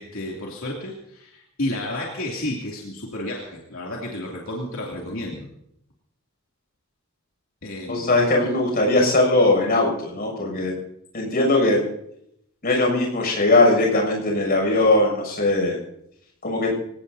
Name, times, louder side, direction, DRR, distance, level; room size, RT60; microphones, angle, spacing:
voice 1, 0.0-5.5 7.6-8.2, left 1 dB, 80° left, -3 dB, 2.9 m, -31 dB
voice 2, 7.9-10.7 11.1-11.8 12.6-15.8 16.4-16.7, left 2 dB, 45° left, 0 dB, 6.8 m, -20 dB
26.0 x 17.5 x 2.8 m, 0.76 s
head